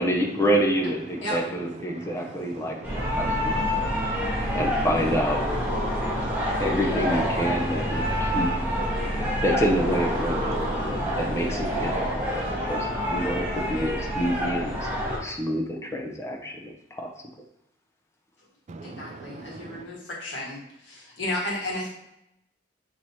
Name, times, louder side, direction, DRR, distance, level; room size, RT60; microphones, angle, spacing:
voice 1, 0.0-3.9 4.5-5.4 6.6-8.5 9.4-10.6 10.9-12.3 12.6-14.9 15.2-17.1, equal, 15° left, 1 dB, 0.5 m, -28 dB
sound 1, 2.8-15.2, equal, 10° right, 1.3 m, -27 dB
voice 2, 3.7-4.6 5.9-6.6 8.9-9.4 10.8-11.2 12.3-12.7 18.7-19.8, right 3 dB, 35° right, 9 dB, 0.3 m, -42 dB
voice 3, 18.8-21.9, left 1 dB, 65° left, -4 dB, 1.5 m, -33 dB
5.7 x 3.1 x 2.7 m, 0.85 s
head